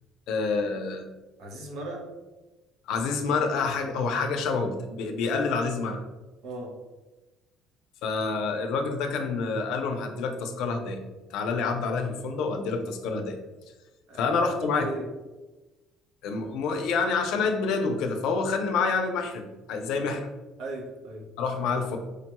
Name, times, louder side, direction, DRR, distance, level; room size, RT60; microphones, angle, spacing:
voice 1, 0.3-1.1 2.9-6.0 8.0-11.0 11.3-13.4 14.2-14.9 16.2-20.3 21.4-22.0, left 4 dB, 70° left, 4 dB, 0.5 m, -27 dB
voice 2, 1.4-2.0 6.4-6.7 14.1-14.2 14.6-15.0 20.6-21.2, right 1 dB, 70° right, 1 dB, 0.8 m, -36 dB
4.8 x 2.2 x 2.9 m, 1.1 s
cardioid pair, 165°, 0 cm